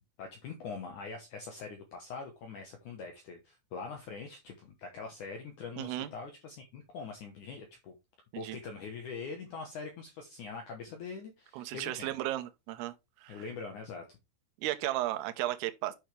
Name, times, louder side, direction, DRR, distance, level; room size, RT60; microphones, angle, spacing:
voice 1, 0.2-8.0 8.4-12.2 13.3-14.0, left 5 dB, 90° left, 1.7 m, -43 dB
voice 2, 5.8-6.1 8.3-8.6 11.5-12.9 13.2-13.4 14.6-15.9, right 15 dB, 75° right, 2.5 m, -34 dB
9.9 x 6.3 x 3.4 m
omnidirectional pair, 5.5 m